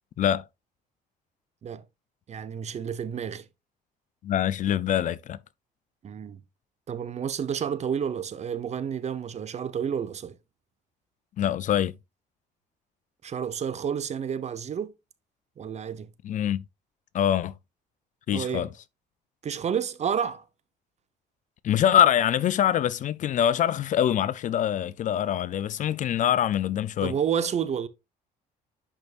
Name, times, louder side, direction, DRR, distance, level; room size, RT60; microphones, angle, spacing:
voice 1, 2.3-3.4 6.0-6.4 6.9-10.3 13.2-14.9 15.6-16.1 18.3-18.7 19.4-20.4 27.0-27.9, right 8 dB, 40° right, 0.9 m, -30 dB
voice 2, 4.2-5.4 11.4-12.0 16.2-16.6 17.1-17.6 18.3-18.7 21.6-27.1, left 10 dB, 50° left, 0.5 m, -24 dB
10.5 x 5.3 x 2.5 m
cardioid pair, 110°, 17 cm